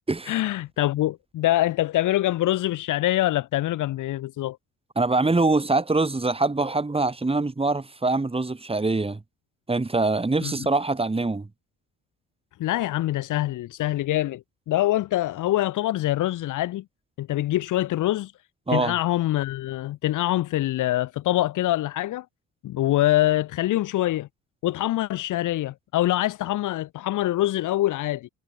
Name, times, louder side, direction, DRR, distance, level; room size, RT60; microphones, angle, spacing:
voice 1, 0.3-4.6 10.4-10.5 12.6-16.8 17.2-18.3 18.7-22.3 22.6-24.3 24.6-28.3, left 15 dB, 85° left, 2.8 m, -24 dB
voice 2, 5.0-9.2 9.7-11.5 18.7-18.9, right 3 dB, 20° right, 5.7 m, -24 dB
cardioid pair, 90°, 30 cm